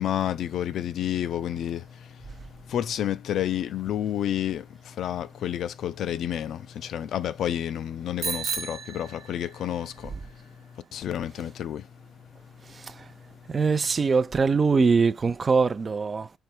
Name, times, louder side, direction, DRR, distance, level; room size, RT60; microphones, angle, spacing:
voice 1, 0.0-11.9 12.7-12.8, left 10 dB, 70° left, 0.4 m, -30 dB
Bicycle bell, 8.2-9.8, right 6 dB, 85° right, 1.1 m, -33 dB
voice 2, 12.6-13.1 13.5-16.3, right 4 dB, 35° right, 0.4 m, -23 dB
3.4 x 3.3 x 4.4 m
cardioid pair, 90°, 0 cm